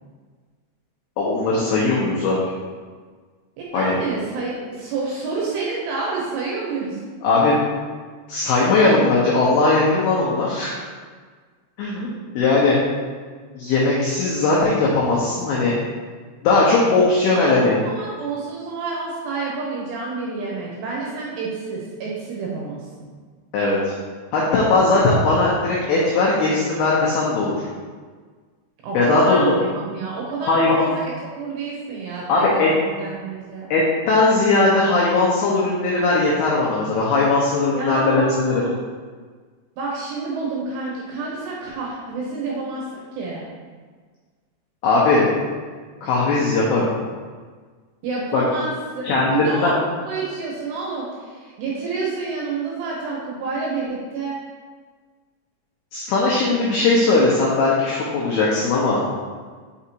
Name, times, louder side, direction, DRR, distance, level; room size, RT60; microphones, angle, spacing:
voice 1, 1.2-2.4 3.7-4.0 7.2-7.6 8.3-10.8 11.8-12.1 12.4-12.8 13.5-15.7 16.4-17.8 23.5-23.9 24.3-27.7 28.9-29.4 30.4-30.8 32.3-32.7 33.7-33.8 34.1-38.6 44.8-45.3 46.0-46.9 48.3-48.4 49.0-49.7 55.9-59.0, left 3 dB, 85° left, -5 dB, 2.2 m, -19 dB
voice 2, 3.6-7.0 17.3-23.1 28.8-33.7 37.7-38.8 39.8-43.4 48.0-49.7 50.1-54.4, right 4 dB, 75° right, -4 dB, 2.6 m, -29 dB
6.0 x 5.6 x 2.8 m, 1.5 s
omnidirectional pair, 5.7 m